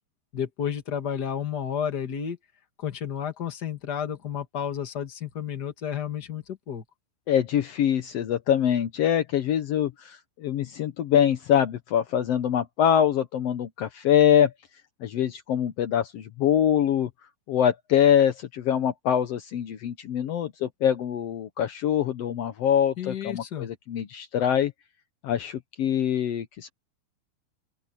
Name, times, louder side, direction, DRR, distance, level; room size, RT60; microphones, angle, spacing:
voice 1, 0.3-2.4 2.8-6.8 23.0-23.7, left 8 dB, 40° left, 1.7 m, -31 dB
voice 2, 7.3-14.5 15.0-17.1 17.5-24.7 25.2-26.7, left 9 dB, 80° left, 1.4 m, -24 dB
open air
omnidirectional pair, 4.3 m